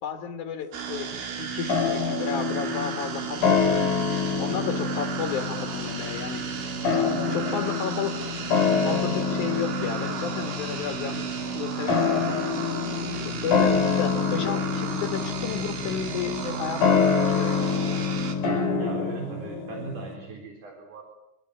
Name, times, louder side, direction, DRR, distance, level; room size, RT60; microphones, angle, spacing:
voice 1, 0.0-4.0 4.4-6.7 7.0-8.3 8.8-12.7 13.2-17.7, left 7 dB, 90° left, 6 dB, 1.7 m, -33 dB
sound 1, 0.7-18.4, right 7 dB, 70° right, 5.3 m, -33 dB
sound 2, 1.7-20.2, left 6 dB, 45° left, 6.0 m, -27 dB
voice 2, 18.8-21.0, right 4 dB, 40° right, 2 dB, 4.8 m, -38 dB
26.0 x 25.5 x 8.7 m, 0.86 s
omnidirectional pair, 6.0 m